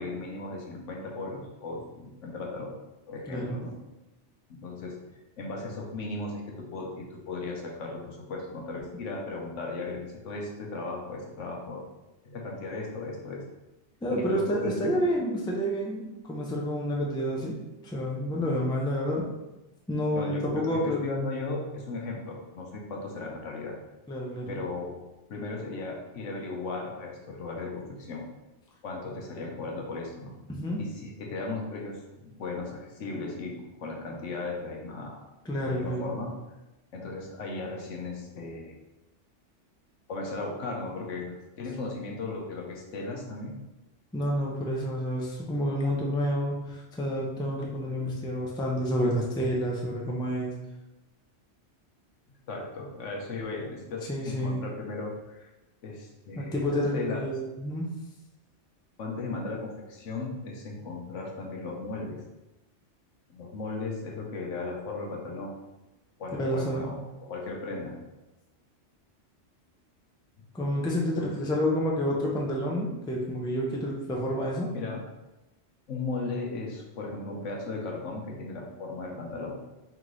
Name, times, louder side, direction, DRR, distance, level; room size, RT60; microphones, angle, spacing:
voice 1, 0.0-2.8 3.1-3.7 4.5-5.0 5.4-11.8 12.2-13.4 14.1-15.0 20.1-23.8 24.5-25.0 25.3-28.2 28.8-30.4 30.8-35.2 35.6-36.3 36.9-38.8 40.1-43.6 52.5-55.5 55.8-57.2 59.0-62.2 63.3-65.6 66.2-68.0 71.2-71.3 74.7-75.0 75.9-79.6, left 3 dB, 85° left, 0 dB, 1.1 m, -36 dB
voice 2, 3.3-3.6 14.0-17.5 17.8-19.2 19.9-21.0 24.1-24.6 30.5-30.8 35.4-36.1 44.1-50.5 54.1-54.6 56.4-57.9 66.3-66.9 70.5-74.7, equal, 5° left, -2 dB, 0.3 m, -29 dB
3.5 x 3.1 x 3.8 m, 1.0 s
omnidirectional pair, 1.2 m